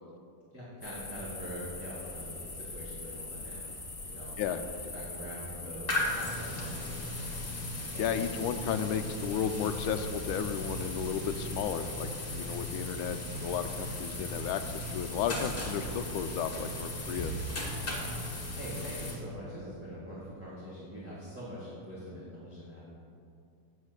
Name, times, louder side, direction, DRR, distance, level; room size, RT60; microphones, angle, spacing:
voice 1, 0.5-7.5 7.9-8.7 12.4-12.6 17.8-22.8, equal, 5° right, -9 dB, 1.9 m, -44 dB
sound 1, 0.8-19.1, left 3 dB, 45° left, 0.4 m, -42 dB
sound 2, 5.9-19.2, left 1 dB, 25° left, 1.9 m, -38 dB
voice 2, 8.0-17.3, left 8 dB, 80° left, 9 dB, 1.3 m, -33 dB
8.2 x 7.5 x 8.0 m, 2.4 s
omnidirectional pair, 2.3 m